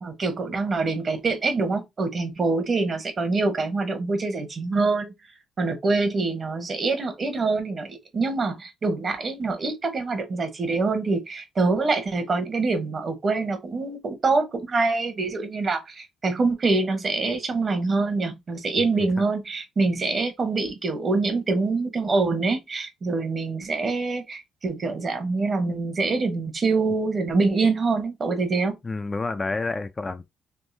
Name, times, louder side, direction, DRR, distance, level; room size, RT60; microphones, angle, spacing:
voice 1, 0.0-5.1 5.6-28.8, right 3 dB, 40° right, 1.0 m, -25 dB
voice 2, 28.8-30.2, left 3 dB, 25° left, 0.4 m, -29 dB
3.6 x 2.6 x 2.7 m
cardioid pair, 90°, 0 cm